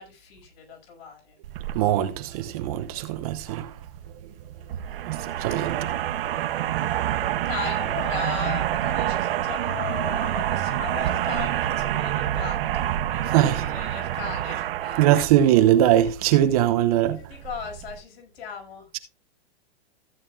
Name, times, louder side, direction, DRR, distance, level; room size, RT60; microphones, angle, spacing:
voice 1, 0.0-1.3 4.6-4.7 7.4-15.0 17.1-18.9, left 7 dB, 65° left, 6.0 m, -37 dB
sound 1, 1.4-18.0, right 12 dB, 55° right, 1.1 m, -28 dB
voice 2, 1.7-3.8 4.2-4.3 5.1-5.9 6.3-6.6 13.3-13.8 15.0-17.2, right 12 dB, 35° right, 0.8 m, -21 dB
15.0 x 8.7 x 2.4 m
hypercardioid pair, 160°, 33 cm